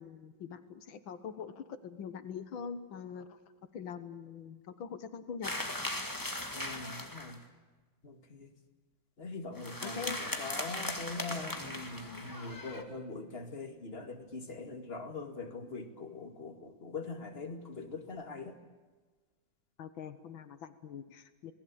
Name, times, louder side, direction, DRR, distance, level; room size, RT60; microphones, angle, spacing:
voice 1, 0.0-3.4 3.7-5.5 5.8-6.0 9.8-10.2 19.8-21.5, left 7 dB, 85° left, 11 dB, 2.0 m, -43 dB
sound 1, 5.4-7.4 9.6-12.8, left 1 dB, 10° left, 2.2 m, -38 dB
voice 2, 6.5-7.4 8.0-8.5 9.2-18.6, left 3 dB, 30° left, 4 dB, 2.6 m, -42 dB
27.0 x 19.5 x 8.7 m, 1.3 s
omnidirectional pair, 2.1 m